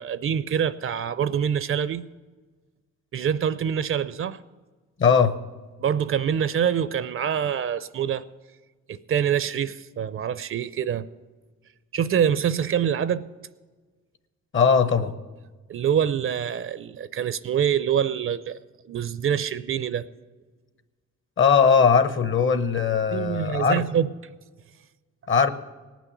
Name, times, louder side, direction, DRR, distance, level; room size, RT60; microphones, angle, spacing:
voice 1, 0.0-2.0 3.1-4.4 5.8-8.2 8.9-11.1 11.9-13.3 15.7-18.6 18.9-20.1 23.1-24.1, right 8 dB, 45° right, 0.5 m, -25 dB
voice 2, 5.0-5.4 14.5-15.1 21.4-23.8 25.3-25.5, left 6 dB, 40° left, 0.9 m, -19 dB
18.5 x 6.1 x 8.2 m
cardioid pair, 90°, 30 cm